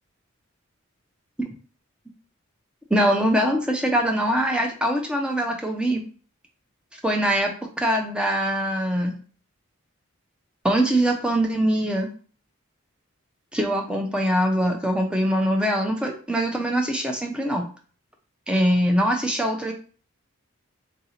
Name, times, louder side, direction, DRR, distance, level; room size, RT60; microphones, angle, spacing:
voice 1, 2.9-6.0 7.0-9.2 10.6-12.1 13.5-17.7 18.5-19.7, equal, 5° right, 2 dB, 0.6 m, -23 dB
3.7 x 2.7 x 4.3 m, 0.40 s
head